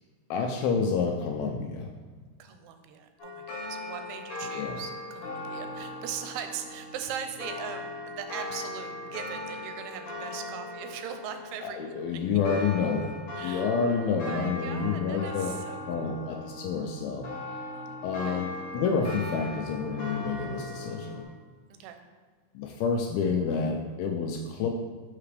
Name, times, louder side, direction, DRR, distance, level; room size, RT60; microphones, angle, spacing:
voice 1, 0.3-1.9 4.5-4.8 11.6-13.1 13.4-15.5 15.9-17.3 18.0-21.2 22.6-24.7, left 5 dB, 85° left, 2 dB, 2.1 m, -29 dB
voice 2, 2.4-12.4 13.4-13.7 14.0-16.3 17.7-18.4 21.7-22.0, right 8 dB, 80° right, 7 dB, 2.6 m, -40 dB
sound 1, 3.2-21.2, left 2 dB, 65° left, 1.9 m, -39 dB
5.9 x 5.7 x 3.3 m, 1.4 s
omnidirectional pair, 4.8 m